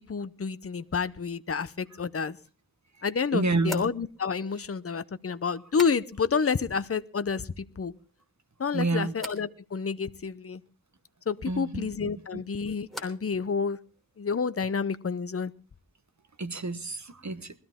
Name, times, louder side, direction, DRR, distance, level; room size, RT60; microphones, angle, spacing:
voice 1, 0.0-2.4 3.0-7.9 8.6-10.6 11.3-13.8 14.2-15.5, left 5 dB, 40° left, 0.7 m, -29 dB
voice 2, 3.3-3.8 8.7-9.1 11.5-11.9 12.3-12.4 16.4-17.5, right 3 dB, 55° right, 1.2 m, -29 dB
sound 1, 3.6-6.5 6.7-7.3 7.7-8.3 9.1-9.5 11.9-13.4 13.6-14.2, left 1 dB, ahead, 3.2 m, -45 dB
21.0 x 13.0 x 3.6 m
wide cardioid pair, 55°, 34 cm